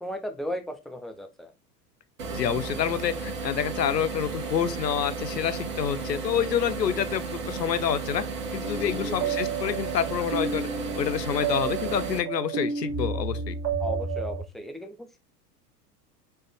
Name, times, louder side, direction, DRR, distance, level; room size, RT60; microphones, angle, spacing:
voice 1, 0.0-1.5 8.9-9.3 13.8-15.2, equal, ahead, 0.6 m, -36 dB
sound 1, 2.2-12.2, right 4 dB, 70° right, 1.4 m, -34 dB
voice 2, 2.3-8.2 8.5-10.7 11.0-13.5, left 9 dB, 90° left, 0.6 m, -28 dB
sound 2, 8.6-14.4, right 5 dB, 30° right, 1.8 m, -31 dB
4.2 x 3.3 x 3.4 m
figure-of-eight pair, 85°, 48 cm